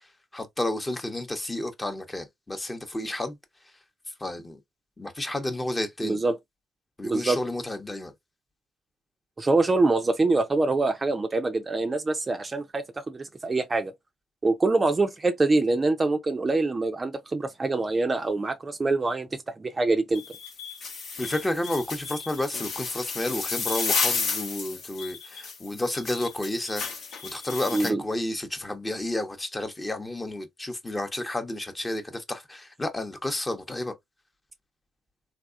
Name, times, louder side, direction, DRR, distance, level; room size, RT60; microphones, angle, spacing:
voice 1, 0.3-3.4 4.2-4.6 5.0-6.2 7.0-8.1 21.2-26.8 27.2-33.9, left 1 dB, 20° left, 0.8 m, -31 dB
voice 2, 6.0-6.4 7.0-7.4 9.4-13.9 14.4-19.3 19.6-20.2 27.7-28.0, right 3 dB, 30° right, 0.5 m, -25 dB
sound 1, 20.1-27.9, left 4 dB, 60° left, 0.8 m, -32 dB
3.4 x 2.3 x 2.4 m
hypercardioid pair, 45°, 0 cm